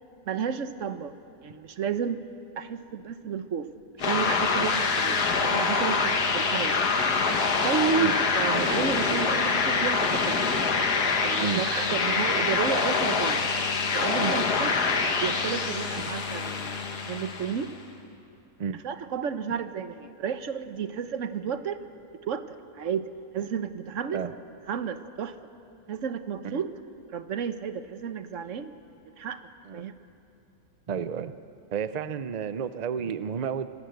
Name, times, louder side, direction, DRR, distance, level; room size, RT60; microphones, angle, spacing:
voice 1, 0.3-1.2 1.4-2.2 2.6-3.7 4.0-6.8 7.6-10.5 11.2-13.5 13.9-14.7 15.2-17.7 18.8-21.8 22.3-24.2 24.7-25.4 25.9-26.7 27.1-28.7 29.0-29.4 29.7-29.9, right 7 dB, 55° right, 10 dB, 1.2 m, -32 dB
sound 1, 4.0-17.7, left 4 dB, 80° left, 2.1 m, -25 dB
voice 2, 30.9-31.3 31.7-33.7, right 7 dB, 90° right, 12 dB, 0.3 m, -31 dB
26.0 x 18.5 x 7.9 m, 2.7 s
omnidirectional pair, 1.7 m